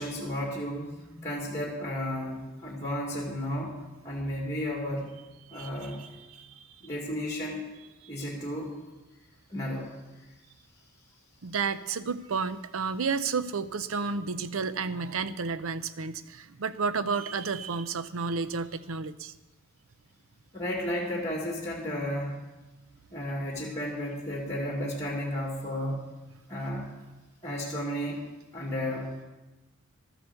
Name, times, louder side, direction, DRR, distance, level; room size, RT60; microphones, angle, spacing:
voice 1, 0.0-3.7 4.0-5.1 5.5-6.0 6.8-7.6 8.1-8.7 9.5-9.9 20.5-22.4 23.1-26.1 26.5-26.9 27.4-28.2 28.5-29.2, equal, 15° left, -1 dB, 2.1 m, -33 dB
voice 2, 5.5-6.6 8.2-8.3 11.4-19.3, right 5 dB, 75° right, 13 dB, 0.6 m, -32 dB
13.0 x 7.9 x 7.0 m, 1.1 s
head